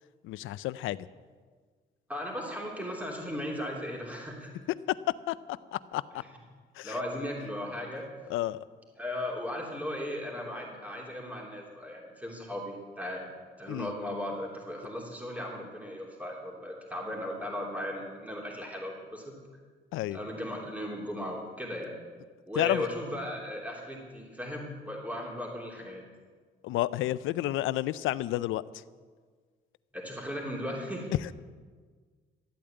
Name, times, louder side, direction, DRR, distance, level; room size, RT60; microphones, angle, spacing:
voice 1, 0.2-1.1 4.9-5.0 5.3-5.4 5.7-6.2 6.8-7.0 8.3-8.7 13.7-13.9 19.9-20.2 22.6-22.9 26.6-28.6, left 15 dB, 85° left, 16 dB, 0.5 m, -30 dB
voice 2, 2.1-4.5 6.8-8.1 9.0-13.2 13.6-19.3 20.1-21.9 22.4-26.0 29.9-31.1, left 1 dB, 5° right, -2 dB, 3.3 m, -37 dB
13.0 x 8.6 x 9.0 m, 1.5 s
cardioid pair, 90°, 20 cm